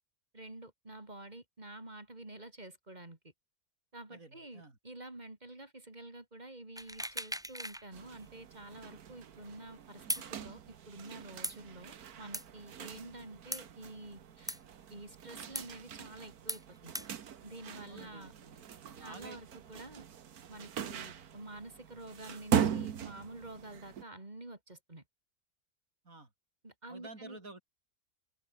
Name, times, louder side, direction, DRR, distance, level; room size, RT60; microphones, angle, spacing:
voice 1, 0.3-3.2 3.9-10.0 10.3-10.6 10.9-14.6 14.9-16.9 17.4-18.3 19.0-20.0 20.5-25.0 26.6-27.4, right 2 dB, 30° right, 3.3 m, -49 dB
voice 2, 4.1-4.8 12.8-13.0 17.9-19.7 26.0-26.3 26.9-27.6, right 2 dB, 65° right, 4.7 m, -52 dB
sound 1, 6.8-7.8 8.2-8.3 10.1-10.3 11.4-11.6 12.3-12.4 13.5-13.6 14.5-14.6 15.5-15.7 16.5-16.6 16.9-17.1, equal, ahead, 1.6 m, -37 dB
sound 2, 7.9-24.0, right 8 dB, 85° right, 1.7 m, -40 dB
omnidirectional pair, 1.6 m